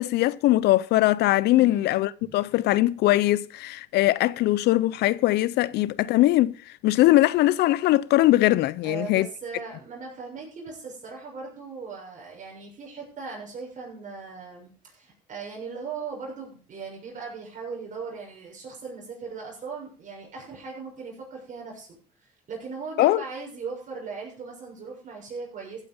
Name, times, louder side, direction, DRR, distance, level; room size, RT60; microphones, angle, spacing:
voice 1, 0.0-9.3 23.0-23.2, left 16 dB, 80° left, 0.6 m, -21 dB
voice 2, 1.5-1.9 2.2-2.3 8.8-21.9 22.2-25.8, right 4 dB, 50° right, 6.8 m, -38 dB
15.0 x 9.0 x 5.5 m
cardioid pair, 110°, 17 cm